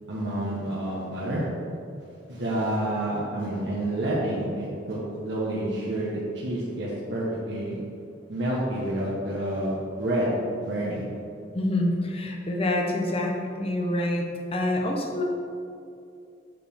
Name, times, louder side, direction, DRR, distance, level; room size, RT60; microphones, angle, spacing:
voice 1, 0.1-1.4 2.3-7.8 8.3-10.3 10.6-11.0, right 1 dB, 70° right, -7 dB, 1.1 m, -29 dB
voice 2, 11.5-14.3 14.5-15.2, left 1 dB, 30° left, 1 dB, 0.8 m, -26 dB
7.8 x 4.8 x 3.5 m, 2.5 s
head